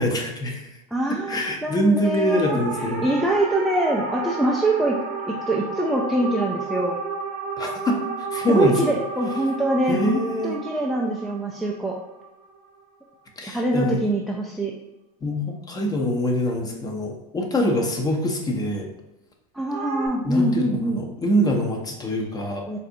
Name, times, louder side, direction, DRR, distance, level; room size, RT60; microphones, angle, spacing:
voice 1, 0.0-0.8 1.3-3.1 7.6-8.8 9.9-10.6 13.4-14.1 15.2-18.9 20.2-22.7, equal, 20° left, 2 dB, 0.7 m, -24 dB
voice 2, 0.9-7.0 8.5-12.0 13.4-14.7 19.5-21.0 22.7-22.8, right 1 dB, ahead, -2 dB, 0.3 m, -24 dB
sound 1, 2.2-12.8 19.7-20.1, right 4 dB, 45° right, 0.7 m, -32 dB
4.1 x 2.5 x 2.6 m, 0.97 s
hypercardioid pair, 100°, 19 cm